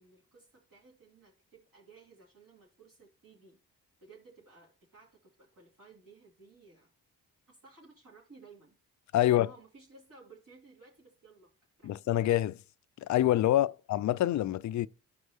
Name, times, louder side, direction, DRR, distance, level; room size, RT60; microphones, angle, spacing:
voice 1, 0.0-3.6 4.0-6.9 7.5-8.8 9.2-11.5 11.8-12.0 13.5-13.7, right 4 dB, 50° right, 2.6 m, -57 dB
voice 2, 9.1-9.5 11.8-12.6 13.0-14.9, left 13 dB, 45° left, 0.4 m, -26 dB
12.5 x 4.6 x 2.7 m
hypercardioid pair, 40°, 44 cm